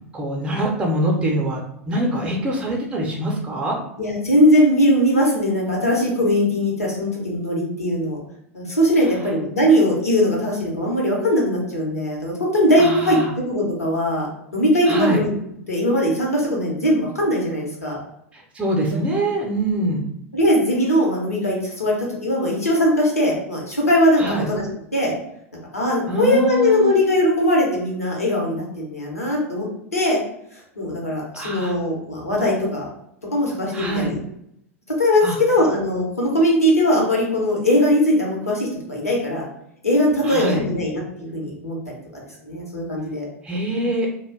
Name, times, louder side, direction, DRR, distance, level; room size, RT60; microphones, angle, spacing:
voice 1, 0.1-3.8 12.8-13.3 14.8-15.2 18.3-20.0 24.2-24.5 26.1-26.9 31.3-31.7 33.7-34.1 35.2-35.4 40.2-40.7 43.4-44.2, right 1 dB, 15° right, -1 dB, 0.6 m, -24 dB
voice 2, 4.0-8.2 8.5-15.3 15.7-18.0 20.3-22.0 22.2-24.7 24.9-25.1 25.7-29.7 29.9-30.2 30.8-32.9 33.3-34.2 35.0-39.4 39.8-43.2, equal, 80° left, -2 dB, 0.9 m, -20 dB
2.4 x 2.2 x 3.4 m, 0.76 s
figure-of-eight pair, 85°, 8 cm